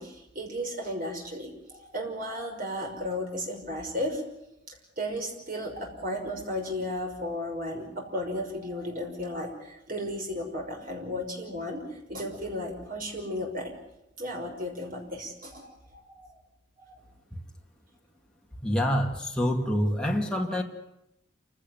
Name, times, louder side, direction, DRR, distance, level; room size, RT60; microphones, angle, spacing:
voice 1, 0.0-4.2 4.7-13.7 14.2-16.4 16.8-17.0, left 1 dB, 45° right, 2 dB, 6.0 m, -34 dB
voice 2, 18.6-20.6, equal, 5° left, 0 dB, 2.3 m, -26 dB
27.5 x 16.5 x 9.5 m, 0.86 s
head